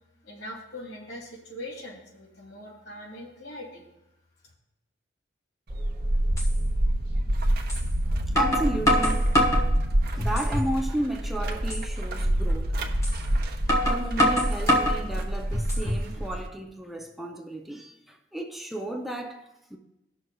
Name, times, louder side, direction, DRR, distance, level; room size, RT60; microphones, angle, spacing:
voice 1, 0.2-3.8, left 1 dB, 80° left, 2.6 m, -41 dB
sound 1, 5.7-16.5, right 1 dB, 55° right, 0.9 m, -27 dB
sound 2, 5.8-5.9 6.4-6.5 7.7-7.8 8.4-9.7 10.2-10.7 11.1-11.2 11.7-11.9 13.0-13.2 13.7-15.0 15.5-16.1, equal, 15° left, 1.3 m, -24 dB
voice 2, 8.3-9.3 10.1-13.0 13.9-19.8, right 1 dB, ahead, 0.5 m, -33 dB
17.0 x 6.3 x 2.3 m
head